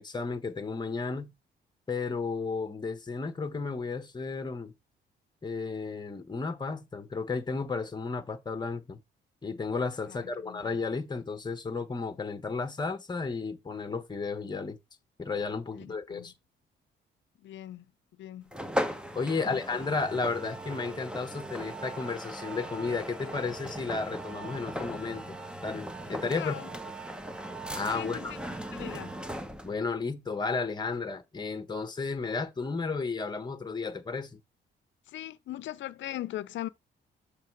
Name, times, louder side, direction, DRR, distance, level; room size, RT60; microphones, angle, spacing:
voice 1, 0.0-1.3 1.9-4.7 5.4-9.0 9.4-14.8 15.2-16.3 19.1-25.2 25.6-26.6 27.7-28.3 29.6-34.4, left 4 dB, 20° left, 1.1 m, -33 dB
voice 2, 10.1-10.6 15.7-16.3 17.4-17.8 18.2-18.4 19.3-19.6 26.3-26.7 27.9-29.2 35.1-36.7, left 13 dB, 70° left, 0.6 m, -40 dB
sound 1, 18.5-29.8, equal, 5° right, 0.8 m, -38 dB
6.8 x 3.4 x 4.6 m
cardioid pair, 90°, 20 cm